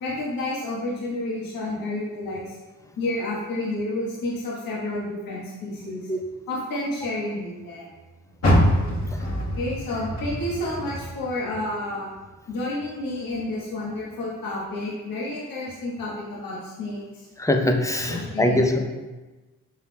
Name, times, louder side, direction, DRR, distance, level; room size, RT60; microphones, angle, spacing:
voice 1, 0.0-2.6 3.0-6.1 6.5-7.9 9.2-12.1 12.5-17.3 18.0-18.8, left 1 dB, 65° left, -5 dB, 1.2 m, -30 dB
Car, 8.4-11.7 12.1-13.4 13.9-14.0 14.6-14.7, equal, 45° left, 1.5 m, -25 dB
voice 2, 17.4-18.8, left 1 dB, 10° left, 4 dB, 0.6 m, -22 dB
5.7 x 3.5 x 2.2 m, 1.2 s
supercardioid pair, 50°, 37 cm